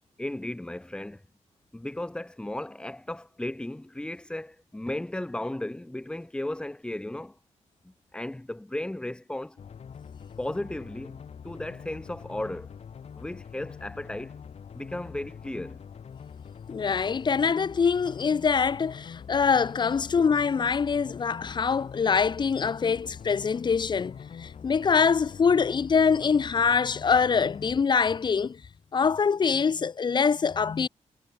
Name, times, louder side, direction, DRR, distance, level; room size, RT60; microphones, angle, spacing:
voice 1, 0.2-1.2 1.7-7.4 7.8-9.6 10.4-12.7 13.2-14.4 14.7-15.8, left 1 dB, 5° left, 0.9 m, -35 dB
sound 1, 9.6-27.8, left 7 dB, 60° left, 3.3 m, -44 dB
voice 2, 16.7-28.6 28.9-30.9, left 6 dB, 40° left, 0.6 m, -24 dB
wide cardioid pair, 120°, 12 cm